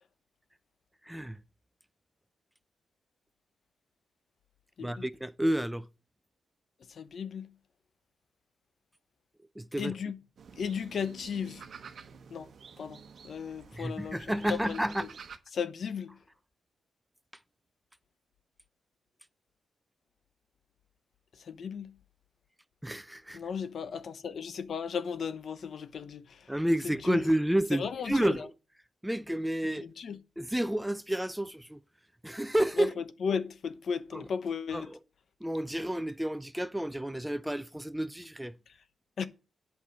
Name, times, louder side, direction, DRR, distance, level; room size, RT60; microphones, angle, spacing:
voice 1, 1.0-1.4 4.8-5.9 9.6-9.9 13.8-15.1 22.8-23.4 26.5-28.5 29.0-29.8 30.4-31.8 32.2-32.9 34.1-34.3 34.7-35.0 35.4-38.5, right 1 dB, 5° right, 0.5 m, -30 dB
voice 2, 6.9-7.5 9.8-10.2 10.6-11.6 12.3-12.5 12.8-13.0 13.2-14.2 14.5-14.8 15.5-16.1 21.5-21.9 23.3-26.5 26.8-27.2 27.7-28.4 29.6-30.2 32.8-34.9 39.2-39.3, left 6 dB, 60° left, 1.0 m, -35 dB
sound 1, 10.4-15.4, right 6 dB, 60° right, 1.0 m, -50 dB
8.5 x 5.8 x 7.3 m
cardioid pair, 95°, 0 cm